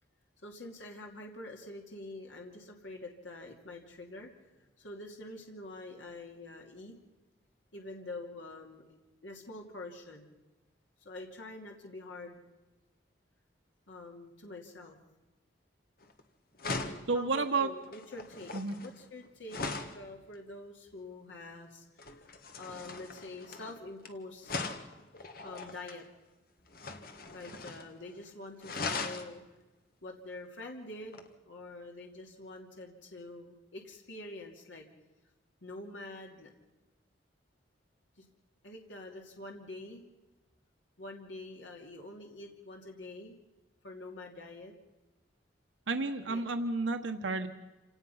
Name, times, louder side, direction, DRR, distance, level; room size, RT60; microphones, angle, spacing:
voice 1, 0.4-7.0 7.7-8.9 9.2-10.3 11.0-12.4 13.9-15.0 17.1-19.6 19.9-22.3 22.6-24.6 25.4-26.1 27.3-29.4 30.0-34.9 35.6-36.5 38.2-38.3 38.6-40.0 41.0-43.4 43.8-44.7 46.3-46.5, left 2 dB, 80° left, 1 dB, 2.7 m, -46 dB
sound 1, 16.0-16.2 16.6-20.0 22.0-24.1 24.4-26.0 26.7-27.9 28.2-28.3 28.6-29.3 31.1-31.3, left 3 dB, 50° left, 1.7 m, -40 dB
voice 2, 17.1-17.7 18.5-18.8 45.9-47.5, right 3 dB, 90° right, 6 dB, 1.3 m, -31 dB
28.0 x 18.0 x 5.7 m, 1.1 s
head